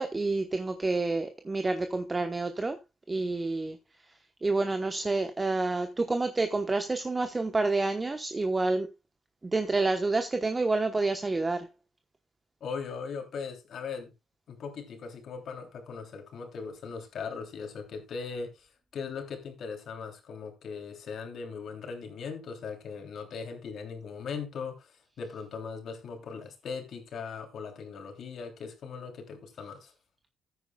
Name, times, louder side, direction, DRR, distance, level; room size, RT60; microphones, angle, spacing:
voice 1, 0.0-2.8 3.1-3.8 4.4-8.9 9.4-11.7, right 3 dB, 25° right, 1.0 m, -28 dB
voice 2, 12.6-14.1 14.5-29.9, left 5 dB, 65° left, 3.1 m, -39 dB
15.0 x 9.4 x 2.3 m
cardioid pair, 90°, 0 cm